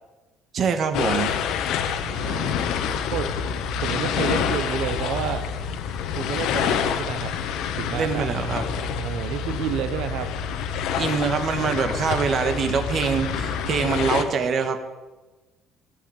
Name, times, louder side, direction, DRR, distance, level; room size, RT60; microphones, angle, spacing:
voice 1, 0.5-1.3 7.9-8.6 10.9-14.8, right 5 dB, 40° right, 7 dB, 1.5 m, -24 dB
sound 1, 0.9-14.2, left 7 dB, 70° left, 1.2 m, -27 dB
voice 2, 2.0-2.6 3.1-3.3 3.8-5.4 6.2-7.3 7.7-8.3 9.0-10.3, right 9 dB, 75° right, 9 dB, 0.9 m, -30 dB
15.5 x 8.4 x 8.7 m, 1.2 s
cardioid pair, 160°, 0 cm